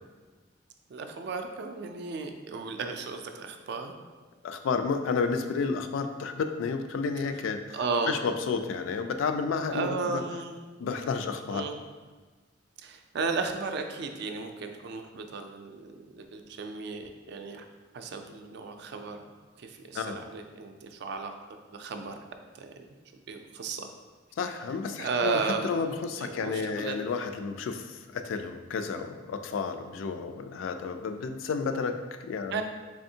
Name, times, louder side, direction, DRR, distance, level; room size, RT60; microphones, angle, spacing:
voice 1, 0.9-3.9 7.7-8.2 9.7-10.6 11.5-11.8 12.8-17.7 17.9-19.2 19.6-21.3 21.7-22.2 22.5-22.9 23.3-23.9 25.0-25.7 26.2-27.0 32.5-32.6, right 4 dB, 60° right, 6 dB, 0.3 m, -34 dB
voice 2, 4.4-7.8 8.1-10.2 10.8-11.6 19.9-20.2 24.4-32.6, left 5 dB, 90° left, 7 dB, 0.3 m, -31 dB
3.4 x 3.4 x 2.7 m, 1.3 s
head